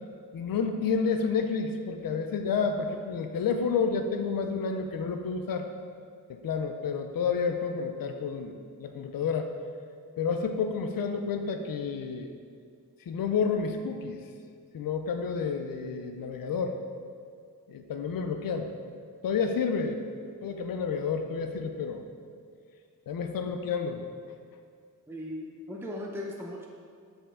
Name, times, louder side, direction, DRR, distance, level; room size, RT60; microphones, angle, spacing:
voice 1, 0.3-5.7 6.3-9.5 10.2-12.3 13.1-14.2 14.7-16.8 17.7-18.7 19.2-20.0 20.4-22.1 23.1-24.0, left 5 dB, 80° left, 6 dB, 0.5 m, -30 dB
voice 2, 25.1-26.7, left 1 dB, 5° right, -1 dB, 0.7 m, -38 dB
8.0 x 4.3 x 3.7 m, 2.2 s
cardioid pair, 70°, 34 cm